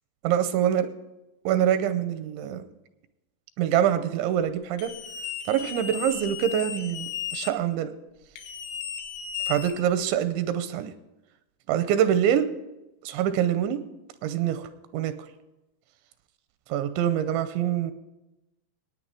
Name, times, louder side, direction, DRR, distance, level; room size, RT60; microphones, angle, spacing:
voice 1, 0.2-0.9 1.5-2.6 3.6-4.9 5.5-7.9 9.5-10.9 11.7-12.5 13.0-13.8 14.2-15.1 16.7-17.9, right 10 dB, 85° right, 11 dB, 2.9 m, -25 dB
sound 1, 4.8-7.5 8.4-10.2, left 9 dB, 85° left, 3.9 m, -35 dB
19.0 x 9.3 x 4.8 m, 0.95 s
omnidirectional pair, 5.4 m